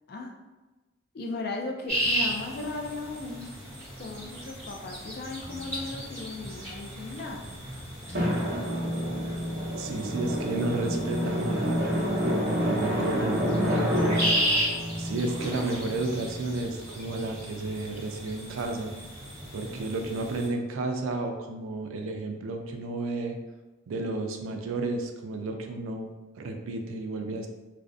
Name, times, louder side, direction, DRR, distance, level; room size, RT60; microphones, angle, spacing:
voice 1, 1.1-3.5 4.0-7.4, left 2 dB, 50° left, 2 dB, 0.3 m, -36 dB
sound 1, 1.9-20.5, equal, 15° right, 1.0 m, -35 dB
sound 2, 5.4-10.7, left 1 dB, 85° left, 0.9 m, -45 dB
Drum, 8.1-16.4, equal, 55° right, 0.7 m, -28 dB
voice 2, 9.8-11.9 12.3-14.6 15.0-18.9 19.5-23.4 23.9-27.5, right 2 dB, 85° right, 4 dB, 0.3 m, -32 dB
2.5 x 2.0 x 2.4 m, 1.2 s
head